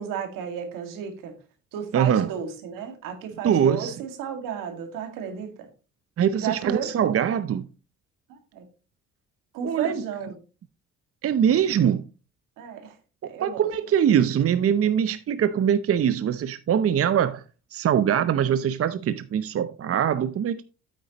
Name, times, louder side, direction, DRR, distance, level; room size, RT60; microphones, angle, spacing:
voice 1, 0.0-1.4 1.7-5.7 6.4-6.9 8.3-8.6 9.5-10.4 12.6-13.0 13.2-13.7, right 7 dB, 85° right, 2.1 m, -33 dB
voice 2, 1.9-2.3 3.4-3.9 6.2-7.7 9.6-9.9 11.2-12.0 13.4-17.4 17.7-20.6, right 9 dB, 45° right, 0.7 m, -22 dB
9.1 x 8.7 x 3.0 m
supercardioid pair, 60°, 32 cm